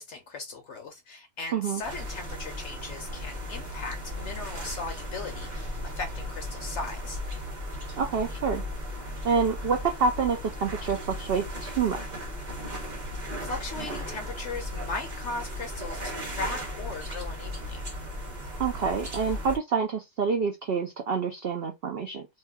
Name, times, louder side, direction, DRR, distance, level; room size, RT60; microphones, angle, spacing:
voice 1, 0.0-7.2 12.8-17.8, left 3 dB, 70° left, 0.7 m, -38 dB
sound 1, 1.8-19.6, equal, 30° right, 1.1 m, -36 dB
voice 2, 8.0-8.6 9.2-12.0 18.6-22.3, right 5 dB, 75° right, 0.5 m, -27 dB
2.8 x 2.3 x 3.4 m
omnidirectional pair, 1.6 m